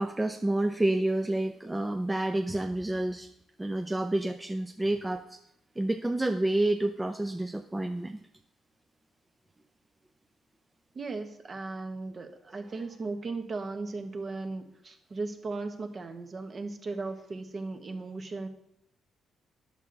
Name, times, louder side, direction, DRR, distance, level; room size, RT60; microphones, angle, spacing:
voice 1, 0.0-3.3 3.6-5.4 5.8-8.2, right 1 dB, 15° right, 5 dB, 0.6 m, -29 dB
voice 2, 10.9-18.5, right 3 dB, 40° right, 6 dB, 1.2 m, -37 dB
9.8 x 6.9 x 3.9 m, 0.78 s
cardioid pair, 90°, 0 cm